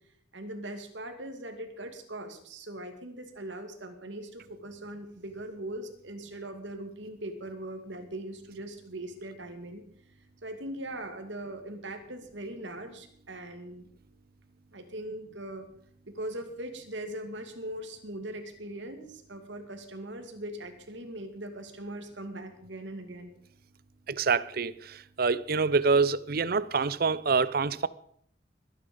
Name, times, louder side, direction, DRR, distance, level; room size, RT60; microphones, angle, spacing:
voice 1, 0.3-9.8 10.4-13.9 14.7-15.7 16.0-23.3, right 1 dB, 70° right, 2.4 m, -40 dB
voice 2, 24.1-27.9, right 4 dB, 50° right, 0.6 m, -26 dB
21.5 x 9.9 x 5.3 m
head